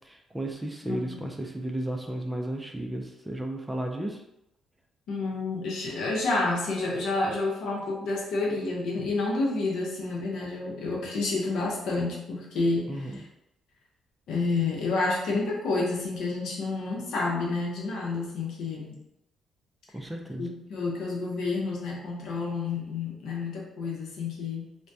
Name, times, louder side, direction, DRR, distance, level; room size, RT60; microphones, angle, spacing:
voice 1, 0.0-4.2 12.9-13.2 19.9-20.5, right 1 dB, 10° right, 2 dB, 0.4 m, -34 dB
voice 2, 0.9-1.2 5.1-13.2 14.3-19.0 20.4-24.7, left 3 dB, 80° left, -3 dB, 0.7 m, -29 dB
2.2 x 2.1 x 2.6 m, 0.84 s
cardioid pair, 90°, 0 cm